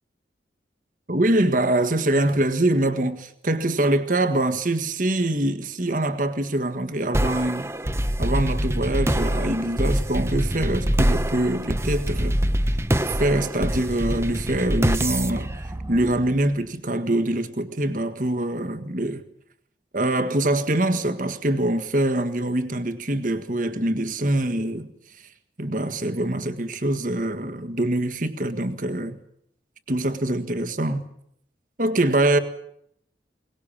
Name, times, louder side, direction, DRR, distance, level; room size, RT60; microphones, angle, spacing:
voice 1, 1.1-7.7 8.2-12.4 13.1-15.5 15.9-19.2 19.9-24.9 25.6-29.2 29.9-31.1 31.8-32.4, right 1 dB, 45° right, 1.7 m, -24 dB
sound 1, 7.1-16.6, right 1 dB, 15° right, 0.9 m, -25 dB
22.5 x 19.5 x 8.7 m
head